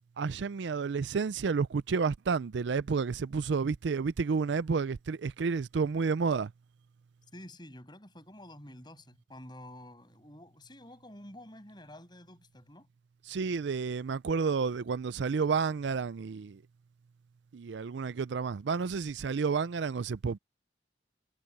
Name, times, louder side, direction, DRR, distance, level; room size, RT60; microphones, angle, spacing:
voice 1, 0.2-6.5 13.3-16.6 17.5-20.4, right 5 dB, 70° right, 0.4 m, -30 dB
voice 2, 7.3-12.9, left 1 dB, 25° left, 7.8 m, -49 dB
head